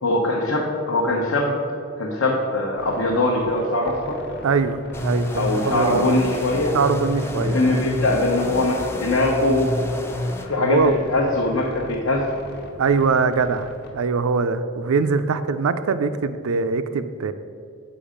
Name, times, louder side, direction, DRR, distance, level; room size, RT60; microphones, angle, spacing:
voice 1, 0.0-1.5 2.0-4.2 5.3-6.7 7.4-9.7 10.4-10.8 11.1-12.2, left 2 dB, 75° left, -3 dB, 0.9 m, -21 dB
sound 1, 2.8-13.9, equal, 45° left, 0.9 m, -40 dB
voice 2, 4.4-6.2 6.7-7.6 10.6-11.0 12.8-17.3, right 4 dB, 80° right, 11 dB, 0.4 m, -22 dB
sound 2, 4.9-10.4, left 1 dB, 10° left, 0.4 m, -29 dB
7.0 x 5.2 x 5.0 m, 2.4 s
head